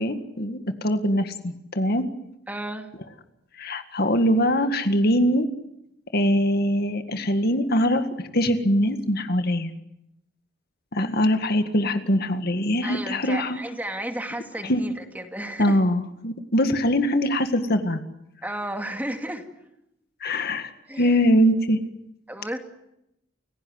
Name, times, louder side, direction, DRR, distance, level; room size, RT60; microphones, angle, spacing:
voice 1, 0.0-2.0 3.6-5.5 6.1-8.1 8.3-9.7 10.9-13.6 14.6-14.8 15.6-18.0 20.2-20.7 21.0-21.8, equal, 55° left, 8 dB, 1.9 m, -22 dB
voice 2, 2.5-2.9 12.8-15.8 18.4-19.5 20.9-21.2 22.3-22.6, right 1 dB, 10° right, 5 dB, 2.5 m, -33 dB
29.5 x 17.0 x 9.6 m, 0.85 s
head